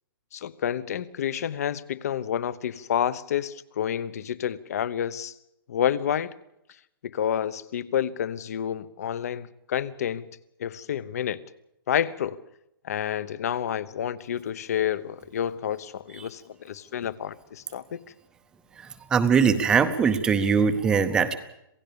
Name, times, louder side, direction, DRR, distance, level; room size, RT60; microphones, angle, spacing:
voice 1, 0.3-5.3 5.7-6.3 7.0-10.3 10.6-11.4 11.9-12.4 12.8-18.0, left 9 dB, 40° left, 1.0 m, -29 dB
voice 2, 19.1-21.4, right 6 dB, 5° right, 0.8 m, -21 dB
27.0 x 17.0 x 6.9 m
hypercardioid pair, 180°, 12 cm